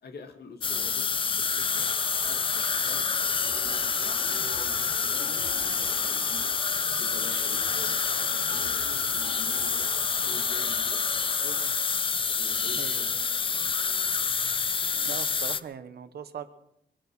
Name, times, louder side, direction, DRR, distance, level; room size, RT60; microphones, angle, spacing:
voice 1, 0.0-3.1 3.4-6.5 7.0-11.6 12.3-13.1 13.4-13.8, left 4 dB, 65° left, 6 dB, 2.0 m, -47 dB
sound 1, 0.6-15.6, left 5 dB, 30° left, 0.5 m, -28 dB
sound 2, 1.6-12.3, left 3 dB, 85° left, 6.8 m, -41 dB
voice 2, 12.8-13.1 15.1-16.5, right 7 dB, 65° right, 11 dB, 1.1 m, -39 dB
23.5 x 9.2 x 6.1 m, 0.77 s
wide cardioid pair, 165°, 18 cm